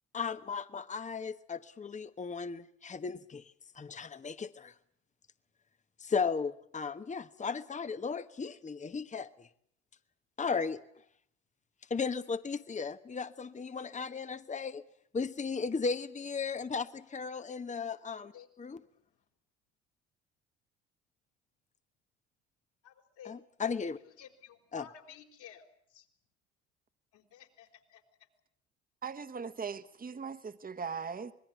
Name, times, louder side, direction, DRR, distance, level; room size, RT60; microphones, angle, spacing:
voice 1, 0.1-4.7 6.0-9.5 10.4-10.8 11.9-14.8 15.1-18.3 18.6-18.8 23.3-24.0 24.7-24.9, left 5 dB, 20° left, 1.2 m, -36 dB
voice 2, 22.8-23.3 24.0-26.1 27.1-28.0, left 9 dB, 65° left, 4.4 m, -54 dB
voice 3, 29.0-31.3, right 5 dB, 25° right, 1.6 m, -39 dB
26.0 x 20.5 x 9.3 m
hypercardioid pair, 60°, 32 cm